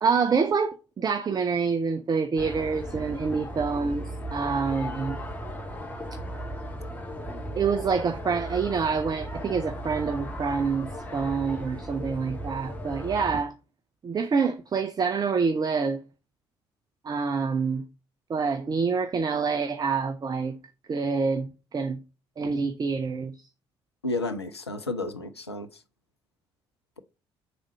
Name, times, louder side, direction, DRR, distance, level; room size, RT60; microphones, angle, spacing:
voice 1, 0.0-5.2 7.5-13.5 14.0-16.0 17.0-17.8 18.3-20.6 20.9-22.0 22.4-23.5, right 5 dB, 30° right, 0.5 m, -27 dB
sound 1, 2.4-13.4, equal, 10° left, 1.5 m, -36 dB
voice 2, 24.0-25.8, left 2 dB, 90° left, 0.4 m, -32 dB
5.0 x 3.6 x 5.2 m
figure-of-eight pair, 45°, 13 cm